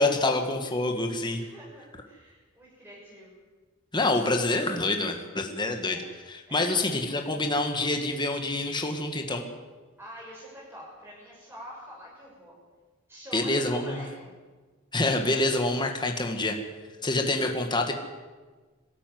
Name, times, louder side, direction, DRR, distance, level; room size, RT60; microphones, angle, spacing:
voice 1, 0.0-1.4 3.9-9.4 13.3-14.0 14.9-16.6 17.0-17.9, left 2 dB, 20° left, 4 dB, 2.1 m, -27 dB
voice 2, 0.9-3.4 5.8-6.1 6.5-6.8 10.0-12.5 13.1-14.3, equal, 10° right, -5 dB, 6.3 m, -46 dB
23.5 x 13.0 x 9.6 m, 1.4 s
head